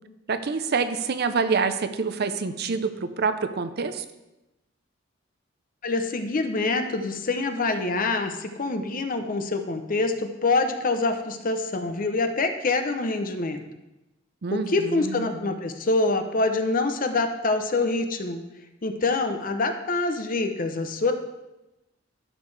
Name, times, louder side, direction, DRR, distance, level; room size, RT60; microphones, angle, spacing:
voice 1, 0.3-4.0 14.4-15.5, right 5 dB, 55° right, 10 dB, 0.6 m, -27 dB
voice 2, 5.8-13.6 14.5-18.4 18.8-21.1, left 3 dB, 45° left, 7 dB, 0.7 m, -25 dB
12.0 x 6.3 x 3.3 m, 0.98 s
head